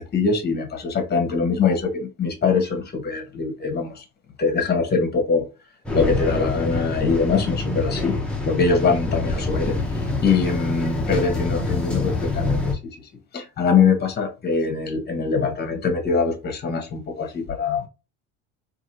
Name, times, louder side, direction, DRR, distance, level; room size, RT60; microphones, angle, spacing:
voice 1, 0.0-4.0 4.4-5.5 5.9-8.2 8.4-12.7 13.3-17.9, left 5 dB, 30° left, 1.1 m, -23 dB
sound 1, 5.9-12.8, left 3 dB, 5° left, 0.8 m, -26 dB
2.8 x 2.7 x 2.7 m
supercardioid pair, 90°, 33 cm